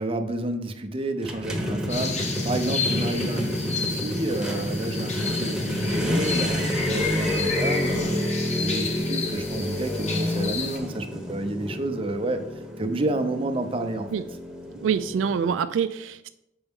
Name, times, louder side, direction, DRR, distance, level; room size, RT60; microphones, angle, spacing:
voice 1, 0.0-8.2 8.6-12.4 12.8-14.1, right 2 dB, 30° right, 7 dB, 0.6 m, -30 dB
sound 1, 1.2-15.5, left 1 dB, 5° right, 0.9 m, -29 dB
sound 2, 1.9-10.8, left 4 dB, 35° left, 0.9 m, -32 dB
voice 2, 14.8-16.3, right 7 dB, 75° right, 11 dB, 0.3 m, -25 dB
7.0 x 5.3 x 3.6 m, 0.85 s
head